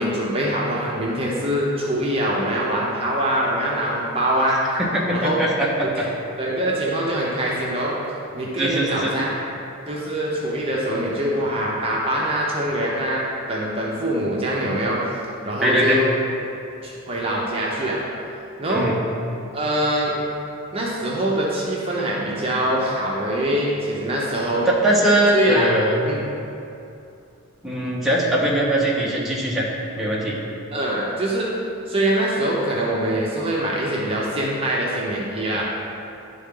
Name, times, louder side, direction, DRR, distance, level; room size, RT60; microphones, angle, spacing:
voice 1, 0.0-4.6 5.1-5.4 6.0-6.1 6.4-8.0 8.3-9.3 9.9-13.2 13.5-15.1 15.4-16.1 16.8-18.0 18.6-18.9 19.5-20.2 20.7-24.7 25.3-25.7 26.0-26.2 30.7-31.5 31.9-35.7, right 1 dB, 30° right, -5 dB, 0.8 m, -23 dB
voice 2, 4.8-6.1 8.6-9.1 15.6-16.0 18.7-18.9 24.7-25.9 27.6-29.7 29.9-30.4, right 1 dB, ahead, -6 dB, 1.0 m, -21 dB
11.0 x 3.8 x 3.7 m, 2.7 s
head